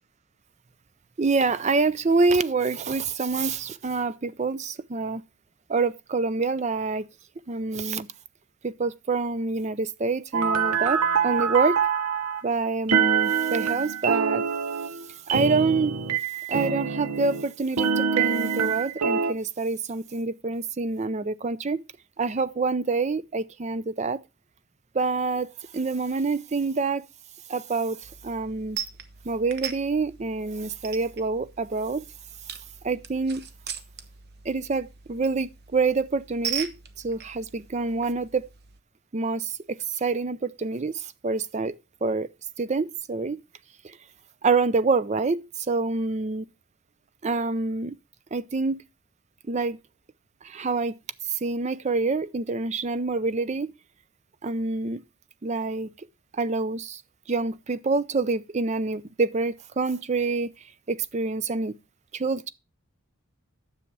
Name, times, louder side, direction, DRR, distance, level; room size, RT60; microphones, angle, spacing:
voice 1, 1.2-5.2 5.7-7.1 7.5-8.1 8.6-11.8 12.4-14.4 15.3-16.0 16.5-21.8 22.2-24.2 24.9-25.5 25.7-27.0 27.5-28.0 28.2-28.8 29.2-32.1 32.8-33.4 34.5-36.7 37.0-38.5 39.1-39.6 39.9-41.7 42.0-42.3 42.6-43.4 43.8-44.0 44.4-46.5 47.2-48.0 48.3-48.8 49.5-49.8 50.4-50.9 51.3-53.7 54.4-55.0 55.4-55.9 56.3-57.0 57.3-60.5 60.9-61.8 62.1-62.5, right 4 dB, 30° right, 0.4 m, -26 dB
sound 1, 10.3-12.4 12.9-17.5 17.8-19.3, right 6 dB, 80° right, 0.8 m, -25 dB
sound 2, 28.0-38.8, right 8 dB, 45° right, 0.8 m, -40 dB
9.8 x 7.0 x 4.6 m
head